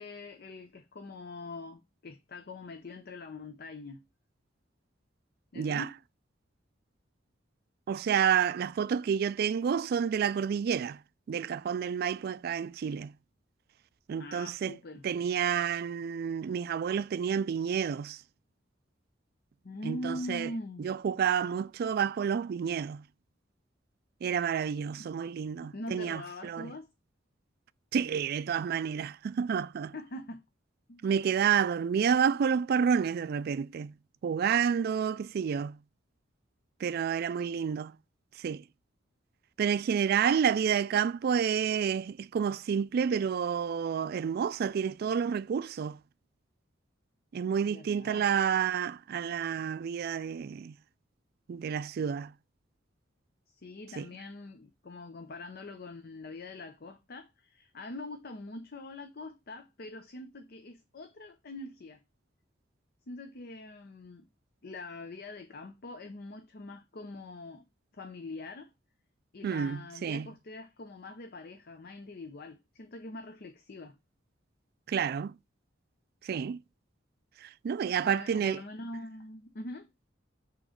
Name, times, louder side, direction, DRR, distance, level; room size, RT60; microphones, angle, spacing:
voice 1, 0.0-4.0 5.5-6.0 14.2-15.0 19.6-20.9 25.0-25.1 25.6-26.9 29.9-30.4 30.9-31.1 47.6-48.3 53.5-62.0 63.1-64.3 64.6-67.7 67.9-68.7 69.3-74.0 78.0-79.9, left 2 dB, 55° left, 0.7 m, -43 dB
voice 2, 5.6-5.9 7.9-11.0 11.3-13.1 14.1-14.8 15.0-18.2 19.8-20.5 20.8-23.0 24.2-26.7 27.9-29.9 31.0-33.9 34.2-35.8 36.8-38.0 38.4-38.6 39.6-46.0 47.3-50.8 51.5-52.3 54.0-54.1 69.4-70.3 74.9-75.4 76.2-76.6 77.4-78.6, right 7 dB, 55° right, 0.3 m, -29 dB
6.2 x 3.1 x 5.0 m
head